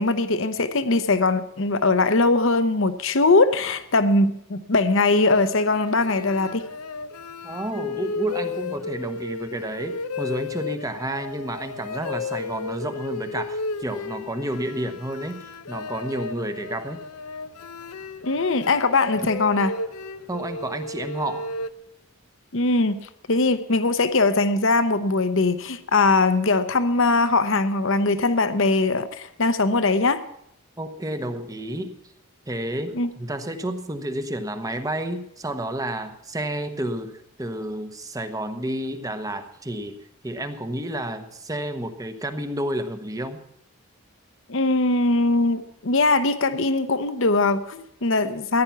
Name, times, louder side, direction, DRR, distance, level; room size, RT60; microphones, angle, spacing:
voice 1, 0.0-6.6 18.2-19.7 22.5-30.2 32.9-33.1 44.5-48.6, left 3 dB, 55° left, 11 dB, 0.8 m, -21 dB
sound 1, 4.8-21.7, left 3 dB, 85° left, 0.6 m, -34 dB
voice 2, 7.4-17.0 19.2-19.3 20.3-21.5 30.8-32.0 32.5-40.0 40.2-43.4, right 1 dB, 15° right, 8 dB, 0.9 m, -30 dB
14.5 x 10.5 x 5.8 m, 0.75 s
head